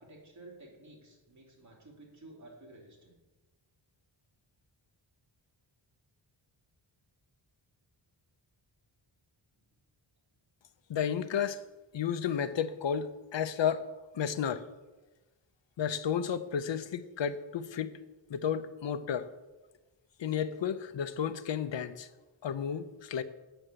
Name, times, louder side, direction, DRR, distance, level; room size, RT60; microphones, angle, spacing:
voice 1, 0.0-3.2, right 2 dB, 35° right, 2.8 m, -53 dB
voice 2, 10.9-11.6 11.9-13.9 14.1-14.6 15.8-17.9 18.3-19.3 20.2-22.1 22.4-23.2, left 8 dB, 65° left, 0.7 m, -32 dB
8.9 x 5.9 x 6.7 m
wide cardioid pair, 120°, 48 cm